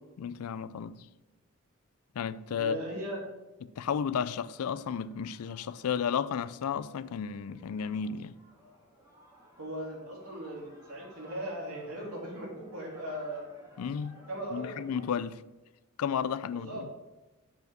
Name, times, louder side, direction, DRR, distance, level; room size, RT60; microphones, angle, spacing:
voice 1, 0.2-1.1 2.2-2.8 3.6-8.3 13.8-14.2 14.5-15.4 16.0-16.7, left 7 dB, 75° left, 0.4 m, -33 dB
voice 2, 2.6-3.2 9.6-13.4 14.3-14.9 16.5-16.8, right 1 dB, 75° right, 3.1 m, -38 dB
sound 1, 3.9-15.2, equal, 15° right, 1.8 m, -57 dB
7.2 x 5.2 x 6.1 m
head